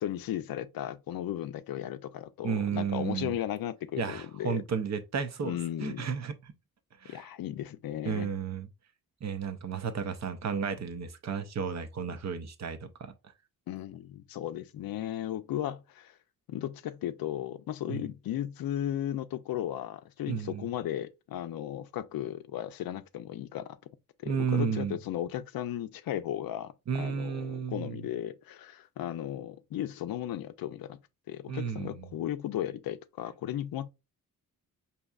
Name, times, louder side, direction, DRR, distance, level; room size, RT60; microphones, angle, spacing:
voice 1, 0.0-4.6 5.4-6.1 7.1-8.3 13.7-16.1 16.5-23.8 24.2-31.0 31.3-33.9, left 11 dB, 75° left, 0.5 m, -35 dB
voice 2, 2.4-3.3 4.0-6.5 7.0-7.3 8.1-8.7 9.2-13.1 17.9-18.1 20.3-20.7 24.3-25.0 26.9-28.0 31.5-32.1, right 6 dB, 50° right, 0.6 m, -33 dB
5.1 x 2.8 x 2.3 m
wide cardioid pair, 115°, 35 cm